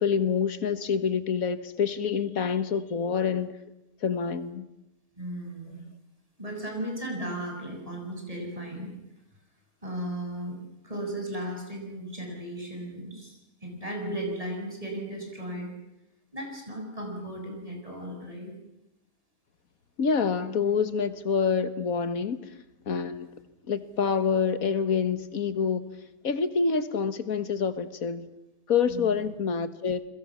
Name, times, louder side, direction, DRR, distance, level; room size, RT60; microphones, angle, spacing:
voice 1, 0.0-3.5 4.0-4.7 20.0-22.4 22.9-23.3 23.7-25.8 26.2-28.3 28.7-30.0, left 6 dB, 65° left, 13 dB, 1.8 m, -27 dB
voice 2, 5.2-5.8 6.4-8.9 9.8-10.6 10.8-15.7 16.3-18.5 28.9-29.2, right 1 dB, 20° right, 1 dB, 6.7 m, -36 dB
30.0 x 22.0 x 7.3 m, 0.90 s
omnidirectional pair, 1.6 m